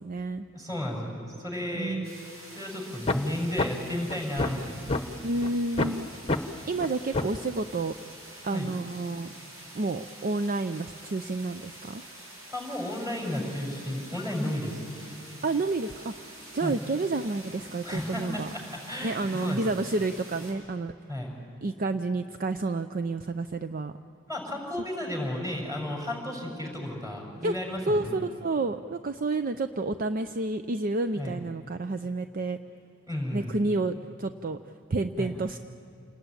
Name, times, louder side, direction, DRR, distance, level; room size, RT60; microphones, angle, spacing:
voice 1, 0.0-0.5 1.7-2.1 5.2-6.1 6.7-7.9 8.4-9.3 9.7-12.0 15.4-18.5 19.0-20.9 21.6-23.9 27.4-27.5 27.9-32.6 33.3-34.6 34.9-35.6, right 2 dB, 45° right, 9 dB, 0.5 m, -30 dB
voice 2, 0.5-2.0 2.5-4.9 8.5-8.7 12.5-14.8 16.6-16.8 17.8-19.8 21.1-21.3 24.3-28.2 31.2-31.4 33.1-33.6 35.2-35.3, left 1 dB, 15° right, 0 dB, 6.1 m, -33 dB
sound 1, 2.0-20.5, right 1 dB, 75° right, 7.2 m, -47 dB
sound 2, 3.1-3.2 3.6-3.7 4.1-5.0 5.4-5.5 5.8-6.0 6.3-6.4 6.8-6.9 7.1-7.4, left 2 dB, 30° left, 1.0 m, -26 dB
28.5 x 19.5 x 9.0 m, 2.6 s
head